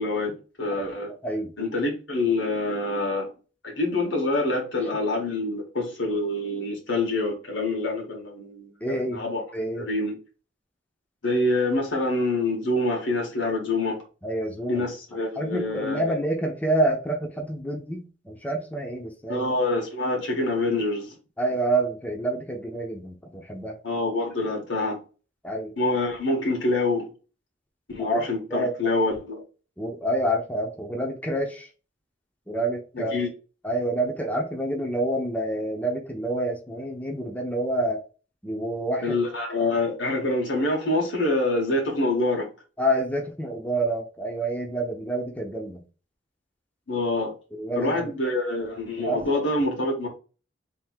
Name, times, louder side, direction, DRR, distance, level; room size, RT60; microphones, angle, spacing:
voice 1, 0.0-1.1 1.6-3.3 3.6-9.4 9.7-10.2 11.2-14.0 14.7-16.2 19.3-21.1 23.8-25.0 25.8-27.1 27.9-29.4 32.9-33.3 39.0-42.5 46.9-47.3 47.8-50.1, left 2 dB, 85° left, 1.8 m, -26 dB
voice 2, 8.8-9.2 9.5-9.9 14.2-14.8 15.4-19.4 21.4-23.8 25.4-25.7 28.0-28.2 28.5-28.7 29.8-31.7 32.5-33.2 33.6-38.0 38.4-39.2 42.8-45.8 47.5-48.1 49.1-49.4, right 1 dB, 10° left, 0.8 m, -28 dB
3.6 x 2.8 x 4.4 m
head